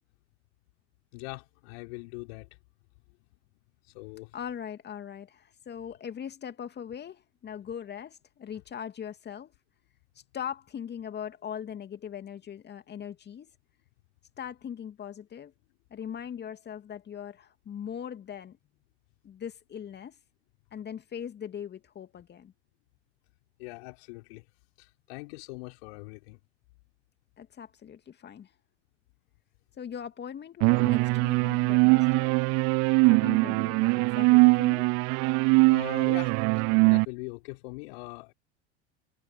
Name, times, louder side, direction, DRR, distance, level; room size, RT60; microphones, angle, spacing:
voice 1, 1.1-2.5 3.9-4.4 23.6-24.5 24.8-26.4 35.7-38.3, left 26 dB, 60° left, 4.1 m, -42 dB
voice 2, 4.3-9.5 10.3-13.5 14.4-15.5 15.9-18.6 19.2-20.2 20.7-22.5 27.4-28.5 29.8-32.4 33.1-34.8, left 8 dB, 30° left, 2.4 m, -40 dB
sound 1, 30.6-37.1, right 30 dB, 45° right, 0.6 m, -22 dB
figure-of-eight pair, 80°, 35 cm